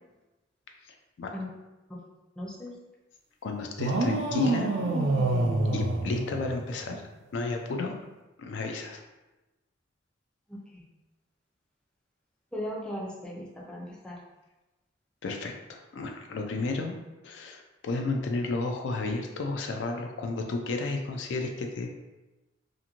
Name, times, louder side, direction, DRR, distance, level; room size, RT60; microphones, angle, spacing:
voice 1, 0.8-1.4 3.4-4.7 5.7-7.0 7.3-7.9 8.4-9.0 15.2-17.0 17.2-21.9, left 3 dB, 70° left, 3 dB, 0.4 m, -32 dB
voice 2, 2.4-2.7 10.5-10.8 12.5-14.2, equal, 5° left, -4 dB, 0.5 m, -37 dB
sound 1, 3.8-6.9, right 2 dB, 70° right, 0.4 m, -27 dB
2.5 x 2.5 x 2.9 m, 1.1 s
head